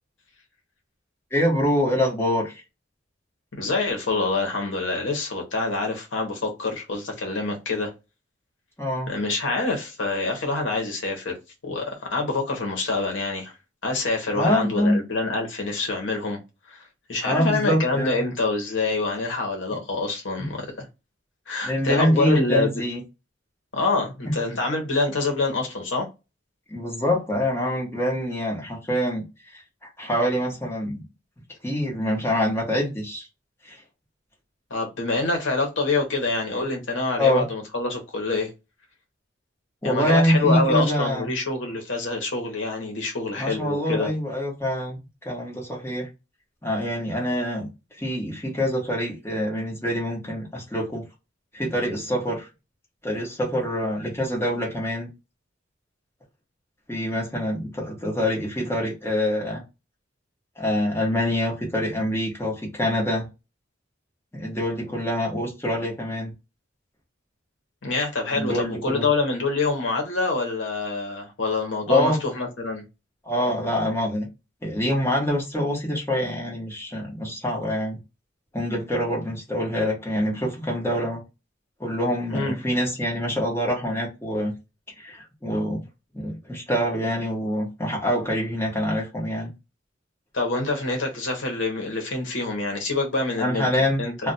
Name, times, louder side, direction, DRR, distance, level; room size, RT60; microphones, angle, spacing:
voice 1, 1.3-2.6 8.8-9.1 14.3-15.0 17.2-18.2 19.7-19.8 20.4-20.5 21.6-23.0 26.7-29.6 30.0-31.0 31.6-33.3 33.6-33.8 37.2-37.4 39.8-41.3 43.4-45.0 45.2-46.1 46.6-47.7 48.0-51.0 51.5-52.5 53.0-55.1 56.9-59.6 60.6-63.3 64.3-66.3 68.3-69.1 71.9-72.2 73.2-74.3 74.6-78.0 78.5-81.2 81.8-84.5 85.0-85.8 86.1-89.5 93.4-94.3, equal, 15° left, 1.0 m, -25 dB
voice 2, 3.5-7.9 9.1-11.4 11.6-13.5 13.8-16.4 16.7-16.8 17.1-20.9 21.5-22.7 23.7-26.1 34.7-38.5 39.8-44.1 67.8-72.8 82.3-82.6 90.3-93.7 94.0-94.1, left 3 dB, 75° left, 0.9 m, -26 dB
2.4 x 2.2 x 3.9 m
head